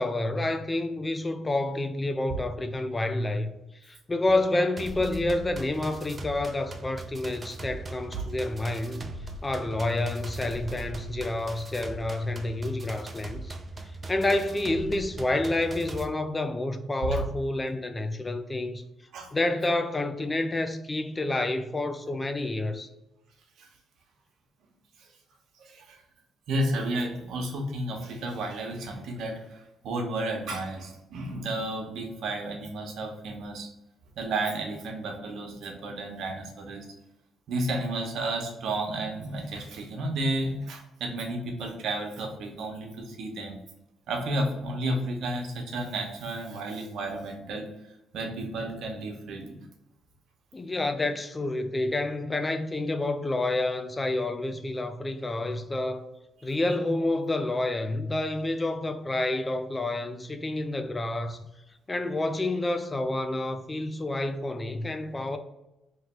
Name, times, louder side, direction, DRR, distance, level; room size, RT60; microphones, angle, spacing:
voice 1, 0.0-3.5 3.8-9.1 9.4-13.5 14.1-18.8 19.3-22.9 50.5-56.1 56.4-61.4 61.9-65.4, left 2 dB, 20° left, 0.5 m, -29 dB
sound 1, 4.8-16.1, right 2 dB, 30° right, 0.5 m, -40 dB
voice 2, 25.6-26.0 26.5-33.7 34.2-36.8 37.5-43.6 44.1-47.6 48.1-49.6, right 1 dB, 75° right, 1.0 m, -32 dB
3.2 x 3.1 x 4.4 m
cardioid pair, 90°, 0 cm